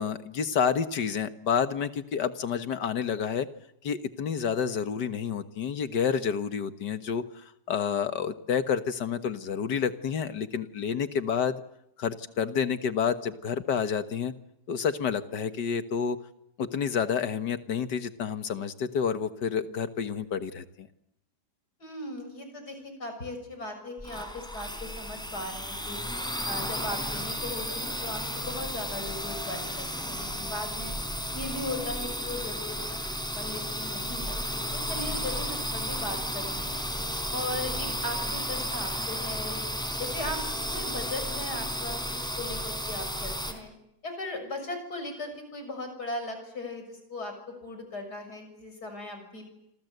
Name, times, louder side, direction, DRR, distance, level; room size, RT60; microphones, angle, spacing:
voice 1, 0.0-3.5 3.8-11.6 12.0-14.3 14.7-16.2 16.6-20.9, left 7 dB, 90° left, 10 dB, 2.0 m, -29 dB
voice 2, 21.8-26.0 26.4-30.9 31.3-32.8 33.3-36.8 37.3-39.6 40.0-40.4 40.7-43.7 44.0-49.5, left 2 dB, 70° left, 6 dB, 6.9 m, -38 dB
sound 1, 24.0-43.5, equal, ahead, 3.7 m, -33 dB
27.5 x 27.0 x 8.0 m, 0.81 s
omnidirectional pair, 1.8 m